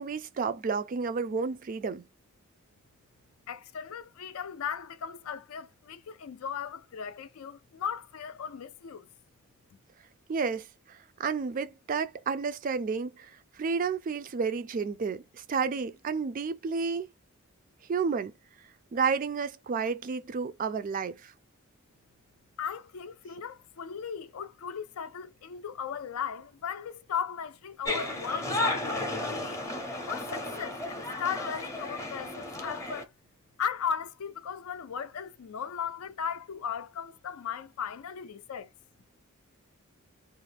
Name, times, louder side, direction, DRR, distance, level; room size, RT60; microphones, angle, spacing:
voice 1, 0.0-2.0 10.3-13.3 13.6-17.1 17.9-18.3 18.9-21.3, right 5 dB, 40° right, 0.3 m, -31 dB
voice 2, 3.5-9.1 22.6-29.6 30.1-33.1 33.6-38.7, left 7 dB, 75° left, 0.4 m, -37 dB
sound 1, 27.8-33.0, left 2 dB, 15° left, 0.6 m, -33 dB
2.4 x 2.1 x 3.3 m
head